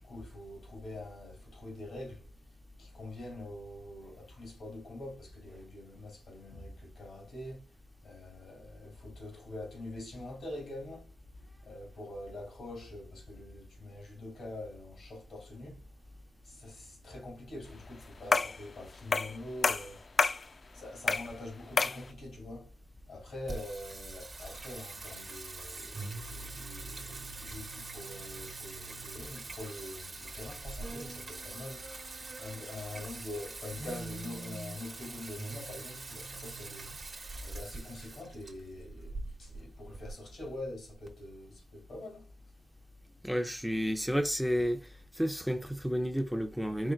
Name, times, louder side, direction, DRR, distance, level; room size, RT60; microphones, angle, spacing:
voice 1, 0.0-2.3 2.8-7.7 8.0-11.1 11.6-15.8 16.4-20.1 20.7-22.8 23.1-36.9 37.4-42.3, left 1 dB, 75° left, 2.7 m, -45 dB
sound 1, 18.3-18.6 19.1-19.4 19.6-20.4 21.1-21.3 21.8-22.0, left 4 dB, 45° left, 0.4 m, -28 dB
Singing, 23.5-41.1, right 3 dB, 45° right, 1.1 m, -43 dB
voice 2, 43.2-44.9 45.1-46.9, equal, ahead, 0.6 m, -31 dB
4.5 x 3.6 x 2.4 m
cardioid pair, 75°, 0 cm